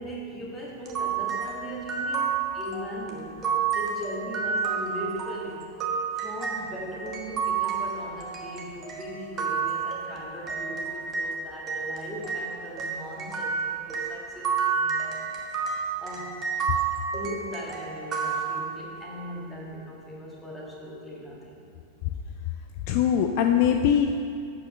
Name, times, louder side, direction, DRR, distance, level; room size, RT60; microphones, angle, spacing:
voice 1, 0.0-2.2 2.5-3.4 3.7-5.7 6.1-15.3 16.0-16.4 17.1-21.7, equal, 10° left, -4 dB, 1.9 m, -39 dB
sound 1, 0.9-11.3 11.7-19.0, right 6 dB, 25° right, 1.2 m, -30 dB
voice 2, 22.9-24.2, left 8 dB, 45° left, 5 dB, 0.4 m, -22 dB
8.0 x 6.2 x 5.3 m, 2.4 s
figure-of-eight pair, 90°, 0 cm